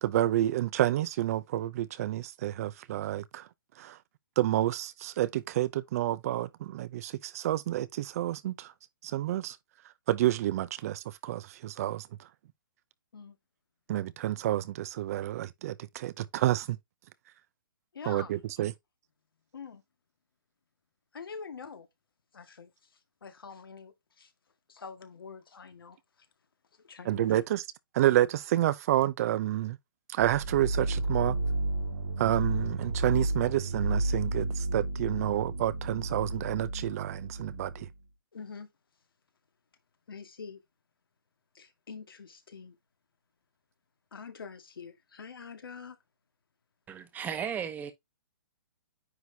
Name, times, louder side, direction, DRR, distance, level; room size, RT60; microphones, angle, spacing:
voice 1, 0.0-3.5 3.8-4.0 4.4-8.7 9.0-9.6 10.1-12.1 13.9-16.8 18.1-18.7 27.1-27.6 27.9-29.8 30.1-31.4 32.2-37.9, right 13 dB, 45° right, 0.6 m, -29 dB
voice 2, 17.9-18.4 19.5-19.8 21.1-21.9 22.3-24.3 24.7-26.3 26.7-27.3 38.3-38.7 40.1-40.6 41.5-42.8 44.1-46.0, left 5 dB, 80° left, 1.9 m, -45 dB
sound 1, 30.2-37.9, right 2 dB, 85° right, 2.1 m, -32 dB
voice 3, 46.9-47.9, right 8 dB, 15° right, 1.1 m, -35 dB
9.5 x 3.9 x 2.8 m
hypercardioid pair, 145°, 12 cm